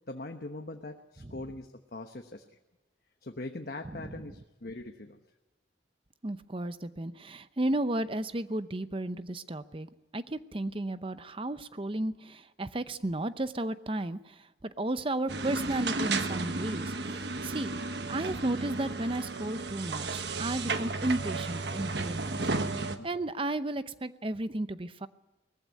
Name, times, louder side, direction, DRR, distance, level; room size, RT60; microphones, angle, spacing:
voice 1, 0.1-2.4 3.2-5.2 22.8-23.1, left 2 dB, 55° left, 4 dB, 1.1 m, -42 dB
voice 2, 6.2-17.7 18.1-25.1, right 1 dB, 30° right, 13 dB, 0.7 m, -34 dB
sound 1, 15.3-23.0, right 3 dB, 65° right, 1.3 m, -33 dB
20.0 x 15.0 x 9.4 m, 1.1 s
head